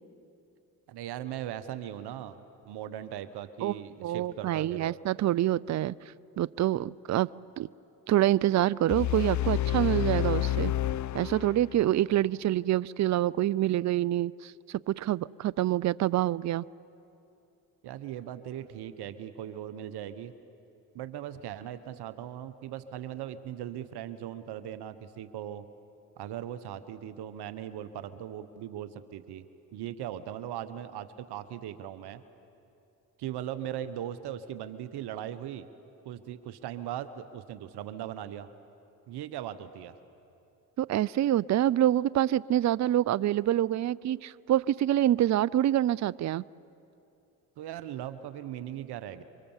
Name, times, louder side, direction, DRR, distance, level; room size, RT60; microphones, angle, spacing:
voice 1, 0.9-2.4 2.6-5.0 17.8-20.3 20.9-25.6 26.2-29.4 29.7-32.2 33.2-35.7 36.0-38.5 39.1-39.9 47.6-49.2, right 11 dB, 75° right, 12 dB, 1.1 m, -39 dB
voice 2, 4.0-5.9 6.4-7.3 7.6-7.7 8.1-10.7 11.1-16.6 40.8-46.4, right 13 dB, 45° right, 22 dB, 0.5 m, -26 dB
sound 1, 8.9-11.9, left 13 dB, 45° left, 0.6 m, -29 dB
27.0 x 24.5 x 7.3 m, 2.7 s
supercardioid pair, 55°, 39 cm